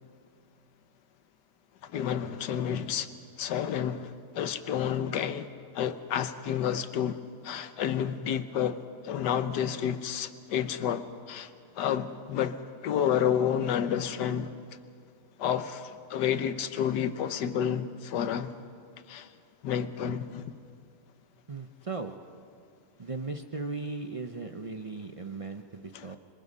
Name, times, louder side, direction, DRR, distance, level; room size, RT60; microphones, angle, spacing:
voice 1, 1.8-3.1 3.4-5.5 5.7-14.5 15.4-18.6 19.1-19.3 19.6-20.5 25.9-26.2, left 9 dB, 80° left, 1.5 m, -30 dB
voice 2, 21.5-22.1 23.0-26.2, right 3 dB, 50° right, 0.3 m, -37 dB
26.0 x 22.5 x 5.4 m
omnidirectional pair, 1.8 m